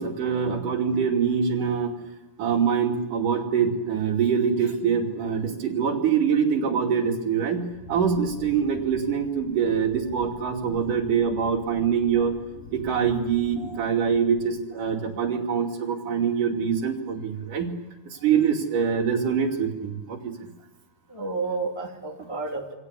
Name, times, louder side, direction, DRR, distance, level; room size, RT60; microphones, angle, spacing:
voice 1, 0.0-1.9 2.4-12.3 12.7-17.8 18.1-20.2, right 7 dB, 60° right, 2 dB, 4.1 m, -24 dB
Wind, 7.7-14.5 14.8-15.3, left 2 dB, 55° left, 7.4 m, -46 dB
voice 2, 21.1-22.7, right 3 dB, 10° left, 0 dB, 2.2 m, -31 dB
28.0 x 24.0 x 8.3 m, 1.1 s
omnidirectional pair, 4.3 m